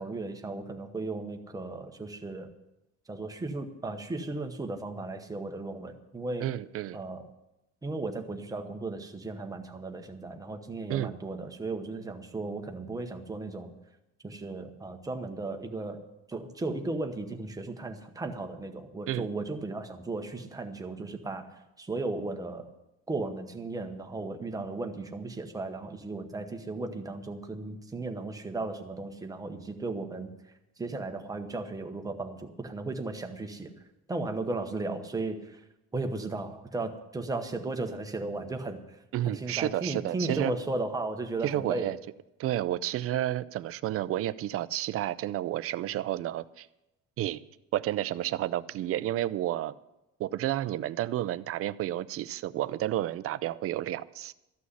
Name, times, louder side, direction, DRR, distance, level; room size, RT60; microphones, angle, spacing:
voice 1, 0.0-2.5 3.1-6.5 6.9-7.2 7.8-13.7 14.2-16.0 16.3-21.5 21.8-22.6 23.1-30.3 30.8-33.7 34.1-35.6 35.9-38.8 39.2-41.9, right 3 dB, 10° right, 4 dB, 1.0 m, -35 dB
voice 2, 6.4-7.0 10.9-11.1 19.1-19.3 39.1-40.5 41.4-42.0 42.4-46.7 47.2-47.4 47.7-49.7 50.2-54.3, right 13 dB, 50° right, 16 dB, 0.4 m, -31 dB
14.0 x 6.2 x 9.6 m, 0.91 s
cardioid pair, 170°, 31 cm